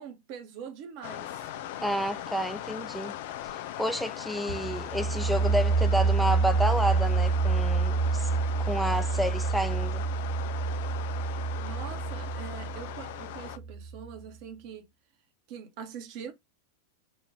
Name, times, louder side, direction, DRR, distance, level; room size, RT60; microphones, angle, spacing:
voice 1, 0.0-1.5 11.6-14.9 15.5-16.3, right 7 dB, 45° right, 1.0 m, -43 dB
sound 1, 1.0-13.6, left 12 dB, 50° left, 0.3 m, -39 dB
voice 2, 1.8-3.2 3.4-8.3 8.6-10.0, equal, ahead, 0.6 m, -30 dB
sound 2, 4.5-14.1, right 4 dB, 65° right, 2.0 m, -28 dB
4.2 x 2.5 x 4.7 m
figure-of-eight pair, 90°, 0 cm